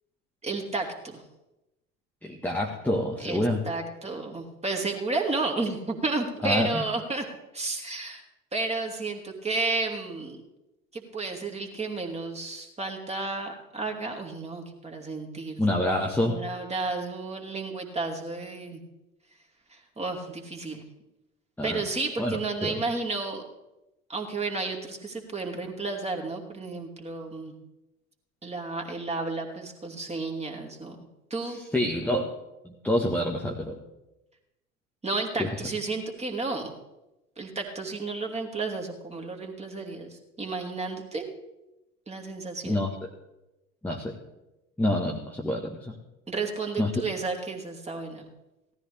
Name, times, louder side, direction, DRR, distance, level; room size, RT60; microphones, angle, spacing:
voice 1, 0.4-1.2 3.2-7.2 7.5-8.2 8.5-10.4 10.9-15.6 16.2-18.8 19.7-20.8 21.6-23.4 24.1-27.5 28.4-31.0 31.3-31.6 35.0-36.7 37.4-41.3 42.1-42.8 46.3-48.2, right 3 dB, 15° right, 2 dB, 2.6 m, -32 dB
voice 2, 2.2-3.6 6.4-6.8 15.6-16.4 21.6-21.8 22.2-22.8 31.7-32.3 32.6-33.8 35.4-35.5 42.6-42.9 43.8-44.1 44.8-45.9 46.8-46.9, left 1 dB, 5° left, 0 dB, 1.3 m, -27 dB
17.5 x 13.5 x 3.4 m, 0.95 s
figure-of-eight pair, 75°, 43 cm